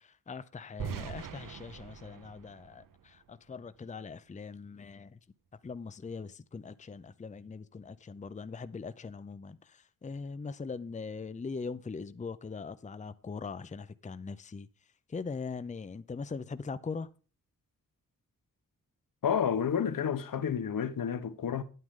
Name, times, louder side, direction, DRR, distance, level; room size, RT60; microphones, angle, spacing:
voice 1, 0.0-5.2 5.6-14.7 15.1-17.1, left 4 dB, 20° left, 0.6 m, -41 dB
sound 1, 0.8-3.8, right 7 dB, 70° right, 0.8 m, -43 dB
voice 2, 19.2-21.6, left 8 dB, 75° left, 1.1 m, -30 dB
10.0 x 9.4 x 3.7 m
wide cardioid pair, 115°, 34 cm